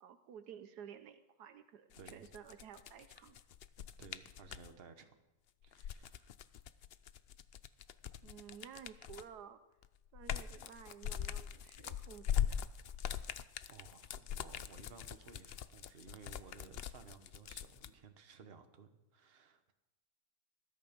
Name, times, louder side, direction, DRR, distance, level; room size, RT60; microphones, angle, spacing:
voice 1, 0.0-3.4 8.2-9.6 10.1-12.6, right 8 dB, 80° right, 10 dB, 1.4 m, -53 dB
sound 1, 1.9-4.7 5.6-9.4 9.8-17.9, left 10 dB, 70° left, 0.6 m, -41 dB
voice 2, 4.0-5.1 5.6-6.3 13.7-19.7, right 5 dB, 40° right, 7 dB, 1.4 m, -57 dB
20.0 x 12.0 x 5.3 m, 1.0 s
omnidirectional pair, 1.7 m